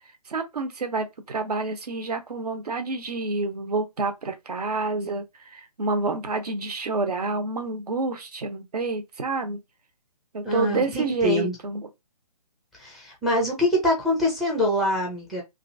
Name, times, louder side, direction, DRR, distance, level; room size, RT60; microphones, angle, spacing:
voice 1, 0.3-9.6 10.3-11.9, right 3 dB, 70° right, 0.9 m, -28 dB
voice 2, 10.4-11.5 12.8-15.4, left 1 dB, ahead, 0.4 m, -24 dB
2.8 x 2.5 x 2.6 m
hypercardioid pair, 150°, 21 cm